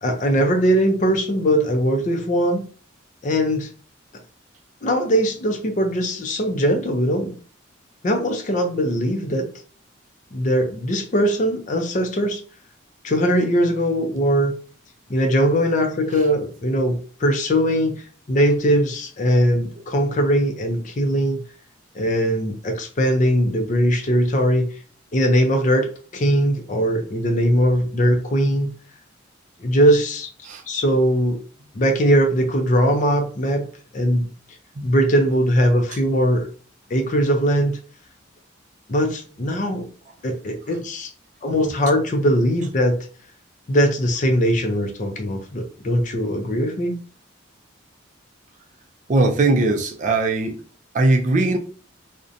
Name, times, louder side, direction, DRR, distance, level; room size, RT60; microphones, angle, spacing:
voice 1, 0.0-2.6 3.2-3.7 4.8-7.4 8.0-9.5 10.3-12.4 13.0-14.5 15.1-21.4 21.9-24.7 25.1-28.7 29.6-30.3 30.7-31.4 31.7-33.7 33.9-34.3 34.8-36.5 36.9-37.8 38.9-39.9 40.2-41.1 41.4-43.1 43.7-47.0, equal, 40° left, 0.4 m, -20 dB
voice 2, 49.1-50.6 50.9-51.6, right 2 dB, 40° right, 0.3 m, -19 dB
2.6 x 2.1 x 2.5 m
head